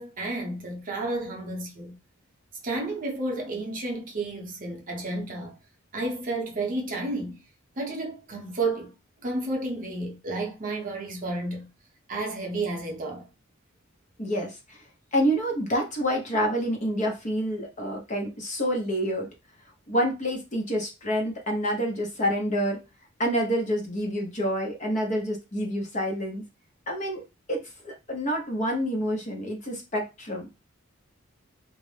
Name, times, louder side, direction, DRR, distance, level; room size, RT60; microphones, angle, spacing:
voice 1, 0.0-2.0 2.6-5.6 5.9-7.4 7.8-8.9 9.2-11.7 12.1-13.3, right 2 dB, 40° right, 0.6 m, -31 dB
voice 2, 14.2-14.8 15.1-19.3 19.9-22.8 23.2-26.4 26.9-27.2 27.5-30.5, equal, 35° left, 0.6 m, -28 dB
2.4 x 2.0 x 3.1 m
head